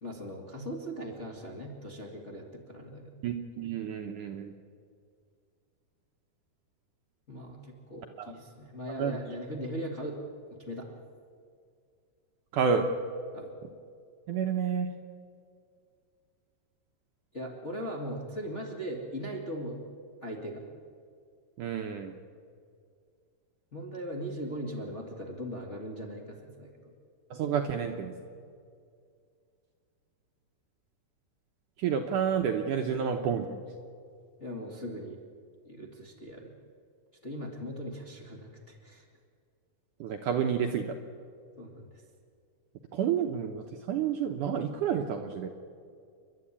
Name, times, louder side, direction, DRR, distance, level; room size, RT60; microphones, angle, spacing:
voice 1, 0.0-3.2 7.3-10.2 10.6-10.9 13.3-13.5 17.3-19.8 20.2-20.6 23.7-26.9 34.4-35.2 35.6-36.5 37.2-39.0 41.6-42.0, equal, 30° left, -1 dB, 1.4 m, -39 dB
voice 2, 3.2-4.5 8.2-8.3 9.0-9.2 12.5-12.9 14.3-14.9 21.6-22.1 27.3-28.1 31.8-33.6 40.0-40.9 42.9-45.5, right 7 dB, 75° right, 4 dB, 2.0 m, -30 dB
29.5 x 11.5 x 9.8 m, 2.3 s
omnidirectional pair, 4.6 m